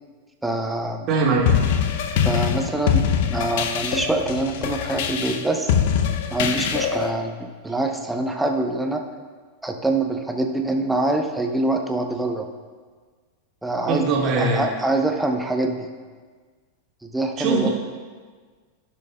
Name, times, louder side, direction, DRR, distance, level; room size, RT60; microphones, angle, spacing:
voice 1, 0.4-1.1 2.2-5.7 6.3-9.0 9.6-12.5 13.6-15.9 17.0-17.7, right 2 dB, 5° right, 3 dB, 0.8 m, -25 dB
voice 2, 1.1-1.5 13.9-14.7 17.4-17.7, right 3 dB, 35° right, -3 dB, 2.0 m, -21 dB
sound 1, 1.5-7.1, left 8 dB, 50° left, 0.6 m, -23 dB
15.5 x 6.2 x 2.3 m, 1.5 s
figure-of-eight pair, 90°, 0 cm